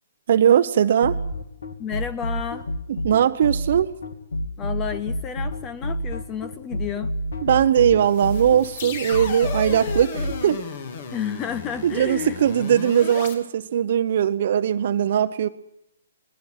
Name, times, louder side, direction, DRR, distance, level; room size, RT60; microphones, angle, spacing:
voice 1, 0.3-1.2 2.9-3.9 7.4-10.6 11.8-15.5, right 9 dB, 55° right, 9 dB, 0.8 m, -20 dB
sound 1, 1.0-10.4, equal, 75° left, 2.5 m, -28 dB
voice 2, 1.8-2.7 4.6-7.1 11.1-12.4, left 8 dB, 20° left, 13 dB, 0.7 m, -31 dB
sound 2, 8.1-13.3, left 5 dB, 50° left, 3.1 m, -34 dB
19.0 x 15.5 x 8.8 m, 0.82 s
hypercardioid pair, 135°, 0 cm